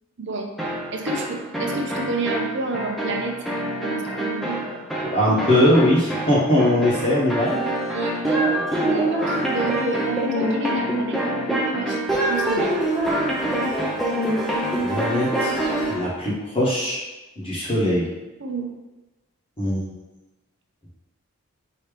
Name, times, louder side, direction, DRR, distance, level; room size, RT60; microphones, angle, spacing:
voice 1, 0.2-0.5 0.9-3.3 3.8-4.8 7.9-8.4 8.8-12.8 18.4-18.7, right 2 dB, 55° right, 2 dB, 0.6 m, -30 dB
sound 1, 0.6-16.1, right 1 dB, ahead, 0.6 m, -25 dB
voice 2, 5.0-7.5 14.8-15.6 15.9-17.0 17.4-18.1 19.6-19.8, left 1 dB, 25° left, -7 dB, 1.0 m, -20 dB
4.8 x 2.9 x 3.3 m, 1.1 s
head